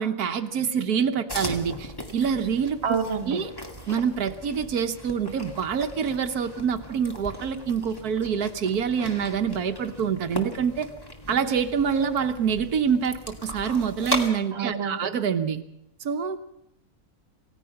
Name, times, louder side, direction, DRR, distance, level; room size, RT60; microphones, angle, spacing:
voice 1, 0.0-3.0 3.3-3.5 3.9-10.9 11.3-15.6 16.0-16.4, right 7 dB, 85° right, 7 dB, 1.6 m, -26 dB
sound 1, 1.3-14.3, equal, 15° left, 2.3 m, -38 dB
voice 2, 2.8-3.4 14.5-15.0, right 5 dB, 45° right, 8 dB, 1.7 m, -28 dB
28.0 x 16.5 x 5.8 m, 0.84 s
omnidirectional pair, 1.6 m